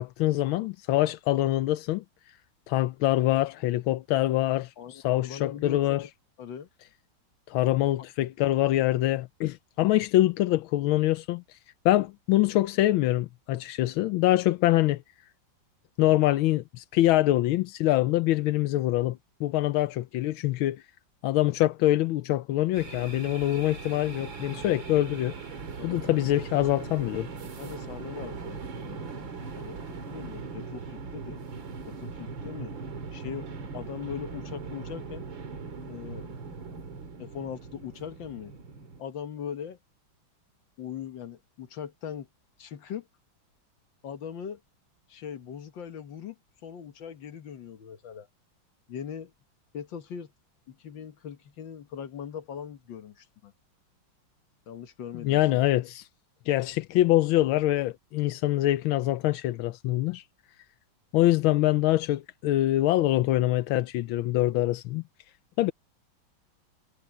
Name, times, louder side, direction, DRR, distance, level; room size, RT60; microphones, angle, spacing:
voice 1, 0.0-2.0 2.7-6.0 7.5-11.6 11.8-15.0 16.0-20.8 21.2-25.3 25.8-27.3 55.2-56.1 56.5-60.2 61.1-65.0 65.6-65.7, left 15 dB, 85° left, 1.5 m, -24 dB
voice 2, 4.8-6.1 6.4-6.7 25.8-26.0 27.6-31.4 31.9-32.8 33.1-35.3 35.9-36.3 37.2-38.5 39.0-39.8 40.8-42.3 42.6-43.1 44.0-44.6 45.1-46.4 46.6-48.3 48.9-49.3 49.7-50.3 50.7-53.5 54.7-55.6, left 8 dB, 70° left, 2.0 m, -40 dB
sound 1, 22.7-39.0, right 4 dB, 70° right, 2.7 m, -40 dB
omnidirectional pair, 2.2 m